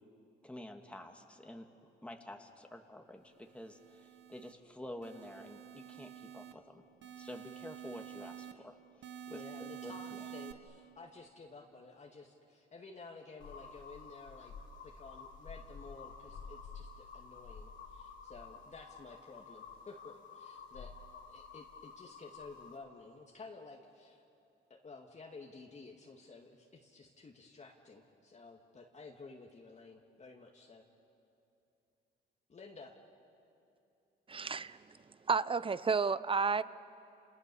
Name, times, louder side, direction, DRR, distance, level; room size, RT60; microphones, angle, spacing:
voice 1, 0.4-1.7 2.0-9.4 9.8-10.3, left 1 dB, 5° left, 3 dB, 2.0 m, -49 dB
sound 1, 3.4-4.5 5.0-6.5 7.0-8.5 9.0-10.5, right 10 dB, 65° right, 1.5 m, -49 dB
voice 2, 9.3-14.5 14.8-20.9 21.3-24.2 24.7-30.8 32.5-33.0, left 3 dB, 35° left, 0 dB, 2.1 m, -53 dB
sound 2, 13.4-22.8, left 5 dB, 70° left, 3.3 m, -51 dB
voice 3, 34.3-34.8 35.3-36.6, right 5 dB, 25° right, 16 dB, 0.7 m, -31 dB
29.5 x 28.5 x 7.0 m, 2.7 s
cardioid pair, 90°, 20 cm